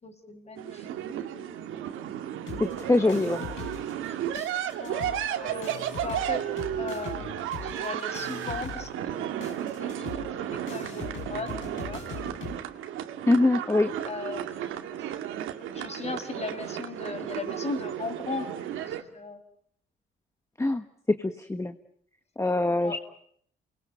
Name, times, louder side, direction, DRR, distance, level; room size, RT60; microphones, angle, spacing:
voice 1, 0.0-2.2 3.1-3.2 4.1-4.5 4.8-6.5 6.8-12.0 14.0-15.2 15.7-18.6 18.9-19.4 22.8-23.0, left 3 dB, 35° left, 8 dB, 5.8 m, -38 dB
sound 1, 0.6-19.0, right 11 dB, 90° right, 2.4 m, -34 dB
sound 2, 2.5-4.1 4.4-12.6, left 7 dB, 80° left, 6.7 m, -42 dB
voice 2, 2.6-3.5 13.3-13.9 20.6-21.7 22.4-23.0, left 2 dB, 15° left, 8 dB, 1.4 m, -24 dB
29.0 x 22.0 x 9.2 m, 0.67 s
cardioid pair, 90°, 20 cm